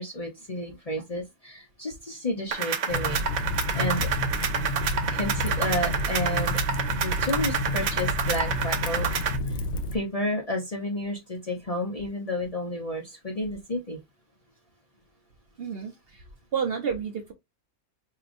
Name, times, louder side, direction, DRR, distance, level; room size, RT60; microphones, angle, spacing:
voice 1, 0.0-3.2 3.7-4.1 5.1-6.6 6.9-9.1 9.4-9.6 9.9-14.0, left 1 dB, 35° left, 0.7 m, -31 dB
sound 1, 2.5-9.4, right 7 dB, 85° right, 1.2 m, -29 dB
Fire, 2.9-10.0, left 1 dB, 65° left, 1.0 m, -30 dB
voice 2, 15.6-16.2 16.5-17.3, right 7 dB, 55° right, 0.8 m, -30 dB
4.7 x 2.8 x 2.5 m
omnidirectional pair, 1.4 m